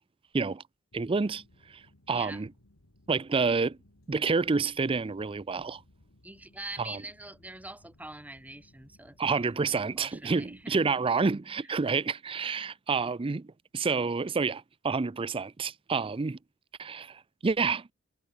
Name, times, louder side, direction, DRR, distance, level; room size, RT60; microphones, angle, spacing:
sound 1, 0.9-10.6, left 1 dB, 75° left, 2.4 m, -62 dB
voice 1, 0.9-1.4 1.7-2.5 3.1-3.8 4.1-5.8 6.8-7.0 9.2-16.4 16.8-17.9, right 4 dB, 25° right, 0.4 m, -29 dB
voice 2, 6.2-10.8, right 2 dB, 5° right, 2.2 m, -44 dB
head